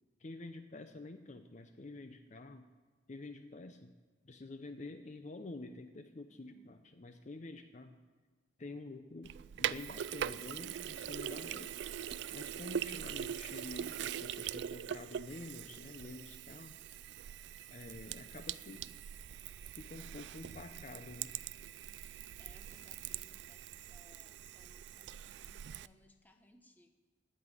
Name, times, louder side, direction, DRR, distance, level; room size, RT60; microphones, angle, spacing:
voice 1, 0.2-2.7 3.1-3.9 4.2-8.0 8.6-11.7 12.3-16.8 17.7-18.9 19.8-21.3, left 2 dB, 40° left, 8 dB, 0.6 m, -48 dB
voice 2, 6.3-6.8 21.9-26.9, left 1 dB, 10° left, 5 dB, 0.9 m, -66 dB
Sink (filling or washing), 9.2-25.9, right 9 dB, 70° right, 0.3 m, -42 dB
16.0 x 5.5 x 9.7 m, 1.4 s
head